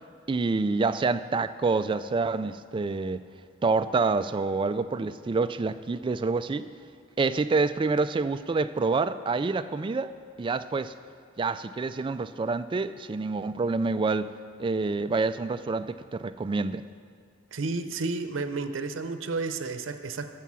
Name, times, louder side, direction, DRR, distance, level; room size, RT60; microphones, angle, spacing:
voice 1, 0.3-3.2 3.6-6.7 7.2-10.1 10.4-10.9 11.4-14.3 14.6-16.9, right 3 dB, 25° right, 12 dB, 0.3 m, -27 dB
voice 2, 17.5-20.3, right 3 dB, 85° right, 9 dB, 0.7 m, -31 dB
13.0 x 7.0 x 6.1 m, 2.3 s
head